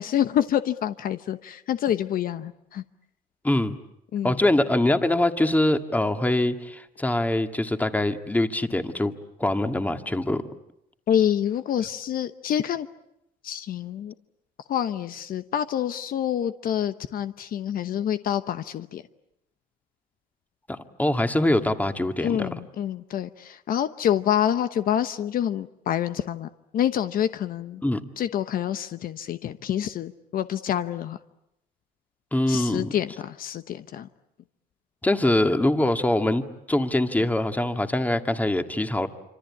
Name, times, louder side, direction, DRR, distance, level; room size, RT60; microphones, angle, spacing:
voice 1, 0.0-2.8 4.1-4.4 11.1-12.9 13.4-14.1 14.7-19.0 22.2-27.8 28.2-31.2 32.5-34.1, left 10 dB, 60° left, 11 dB, 1.0 m, -27 dB
voice 2, 3.4-3.8 4.2-9.1 9.4-10.4 20.7-22.5 27.8-28.0 32.3-32.9 35.0-36.4 36.7-39.1, left 1 dB, 10° left, 7 dB, 1.9 m, -23 dB
26.5 x 26.0 x 8.6 m, 0.82 s
cardioid pair, 110°, 17 cm